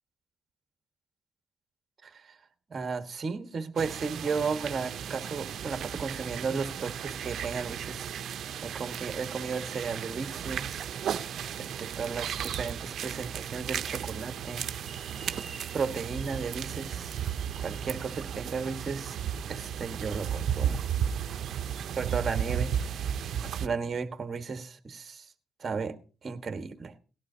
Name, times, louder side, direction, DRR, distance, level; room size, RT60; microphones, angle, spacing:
voice 1, 2.0-2.4 2.7-8.1 8.6-10.9 11.6-14.7 15.7-17.2 17.6-19.2 19.5-20.8 22.0-22.7 23.6-25.3 25.6-26.0 26.2-26.9, right 5 dB, 40° right, 8 dB, 1.4 m, -34 dB
sound 1, 3.8-23.7, right 9 dB, 65° right, 0.7 m, -34 dB
sound 2, 14.8-19.0, right 4 dB, 10° right, 3.2 m, -52 dB
18.0 x 11.5 x 2.8 m, 0.36 s
cardioid pair, 90°, 0 cm